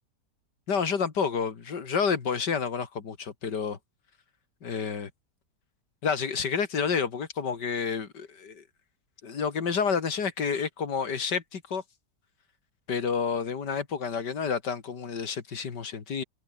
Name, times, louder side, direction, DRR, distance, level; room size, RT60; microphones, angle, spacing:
voice 1, 0.7-3.8 4.6-5.1 6.0-8.6 9.2-11.8 12.9-16.2, left 6 dB, 85° left, 2.8 m, -29 dB
omnidirectional pair, 1.8 m